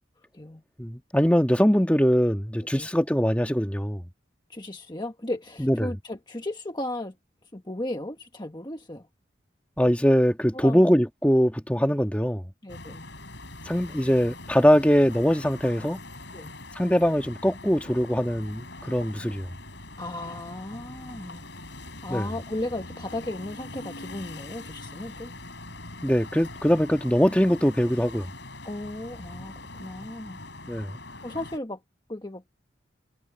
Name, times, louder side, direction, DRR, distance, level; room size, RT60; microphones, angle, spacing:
voice 1, 0.8-4.0 5.6-5.9 9.8-12.4 13.7-16.0 16.7-19.5 22.1-22.3 26.0-28.3 30.7-30.9, equal, 5° left, 1.5 m, -22 dB
voice 2, 4.5-7.1 7.5-9.1 9.9-10.0 10.5-11.0 12.6-13.1 16.3-16.5 20.0-21.5 22.0-25.3 28.6-30.4 31.2-31.8 32.1-32.4, left 1 dB, 20° left, 1.4 m, -35 dB
sound 1, 12.7-31.6, left 2 dB, 65° left, 7.7 m, -42 dB
head